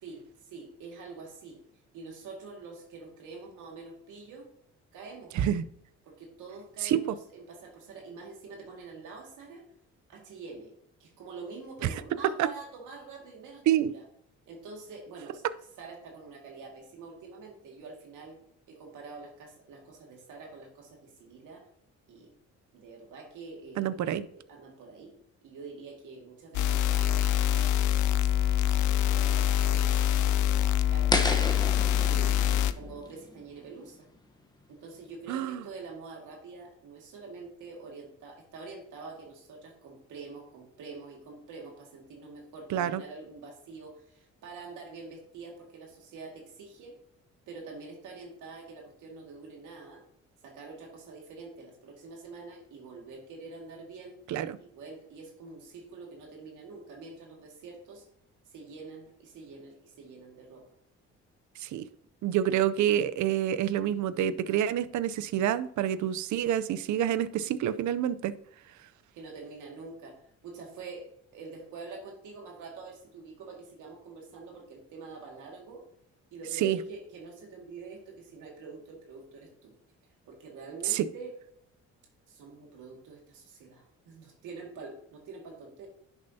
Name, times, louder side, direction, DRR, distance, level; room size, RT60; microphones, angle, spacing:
voice 1, 0.0-1.6 1.9-4.5 4.9-5.3 6.0-9.7 10.1-10.7 11.0-14.0 14.5-15.4 15.8-18.4 18.7-21.7 22.1-22.3 22.7-24.0 24.3-25.1 25.4-27.7 28.1-31.6 32.0-34.1 34.7-47.0 47.5-50.0 50.4-54.2 54.6-58.0 58.5-60.6 69.2-75.8 76.3-79.7 80.3-81.3 82.3-85.9, right 4 dB, 85° right, 0 dB, 2.0 m, -46 dB
voice 2, 6.8-7.1 11.8-11.9 12.4-12.5 13.7-13.9 23.8-24.3 35.3-35.6 42.7-43.0 54.3-54.6 61.6-61.8 62.2-68.3 76.6-76.8 80.8-81.0, right 10 dB, 70° right, 16 dB, 0.6 m, -27 dB
sound 1, 26.5-32.7, left 11 dB, 75° left, 0.6 m, -25 dB
sound 2, 31.1-34.1, left 2 dB, 15° left, 1.0 m, -33 dB
11.0 x 7.0 x 2.8 m, 0.70 s
cardioid pair, 90°, 30 cm